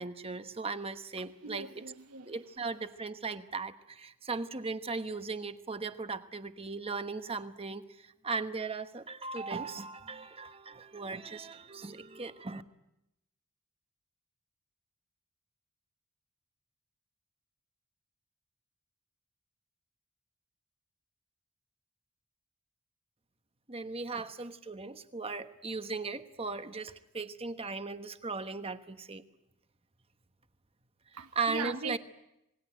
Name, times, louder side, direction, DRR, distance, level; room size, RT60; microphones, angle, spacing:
voice 1, 0.0-1.8 2.2-12.6 23.7-29.2 31.1-32.0, right 4 dB, 25° right, 1.2 m, -38 dB
voice 2, 1.4-2.3 31.2-32.0, right 4 dB, 80° right, 1.3 m, -39 dB
27.0 x 20.0 x 9.2 m
head